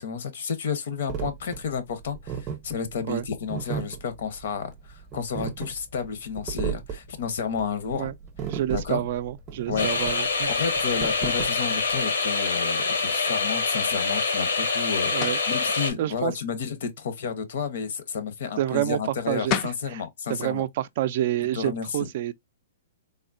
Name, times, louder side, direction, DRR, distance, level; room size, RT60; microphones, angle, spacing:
voice 1, 0.0-8.1 8.7-9.1 9.7-9.9 10.5-15.1 15.5-20.6 21.5-22.1, left 6 dB, 65° left, 0.8 m, -31 dB
sound 1, 1.1-12.0, right 7 dB, 20° right, 0.7 m, -35 dB
voice 2, 8.5-10.5 15.1-15.4 16.0-16.3 18.6-20.0 20.3-22.3, right 13 dB, 50° right, 0.3 m, -28 dB
sound 2, 9.8-15.9, left 4 dB, 90° left, 1.1 m, -25 dB
sound 3, 15.2-15.5 19.2-19.3 19.5-19.9, left 9 dB, 30° left, 0.4 m, -28 dB
3.6 x 2.0 x 2.5 m
hypercardioid pair, 150°, 0 cm